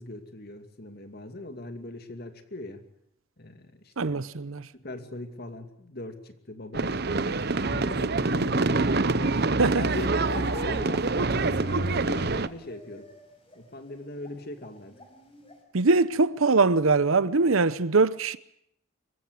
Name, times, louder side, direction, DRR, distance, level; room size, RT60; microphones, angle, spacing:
voice 1, 0.0-2.8 3.4-4.2 4.7-9.3 9.7-13.1 13.5-14.9, left 1 dB, 45° left, 2.5 m, -40 dB
voice 2, 4.0-4.7 9.6-9.8 15.7-18.4, right 3 dB, 80° right, 0.9 m, -22 dB
sound 1, 6.7-12.5, right 3 dB, 50° right, 0.8 m, -26 dB
sound 2, 10.2-15.6, left 2 dB, 25° left, 5.6 m, -48 dB
26.0 x 15.5 x 9.4 m
head